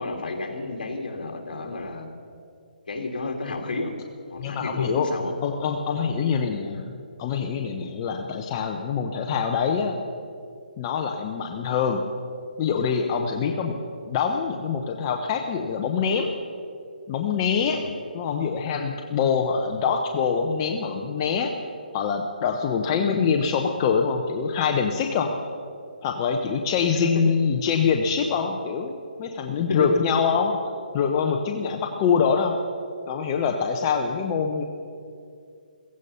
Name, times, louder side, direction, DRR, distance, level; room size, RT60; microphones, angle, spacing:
voice 1, 0.0-2.1 2.9-4.0 4.3-5.3 17.7-17.9 22.9-23.0 29.7-29.9, left 2 dB, 65° left, 2 dB, 2.7 m, -31 dB
voice 2, 4.4-5.1 5.4-6.9 7.2-10.0 10.8-12.0 12.6-13.8 14.1-16.3 17.1-17.8 18.1-21.5 21.9-25.3 26.0-28.9 29.2-30.6 30.9-32.6 33.1-34.6, left 6 dB, 25° left, 2 dB, 0.7 m, -24 dB
16.0 x 15.5 x 5.6 m, 2.4 s
hypercardioid pair, 165°, 5 cm